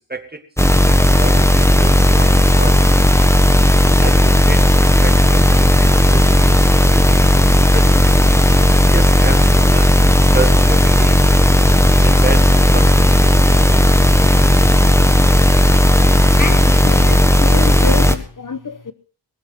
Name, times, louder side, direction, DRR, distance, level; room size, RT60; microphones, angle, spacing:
voice 1, 0.0-3.0 4.0-8.3 8.8-10.0 10.3-11.2 12.0-13.9, right 3 dB, 20° right, 2.3 m, -30 dB
sound 1, 0.6-18.1, left 1 dB, 5° left, 1.3 m, -12 dB
voice 2, 16.4-18.9, left 4 dB, 45° left, 1.1 m, -27 dB
22.0 x 8.0 x 6.0 m
wide cardioid pair, 65°, 44 cm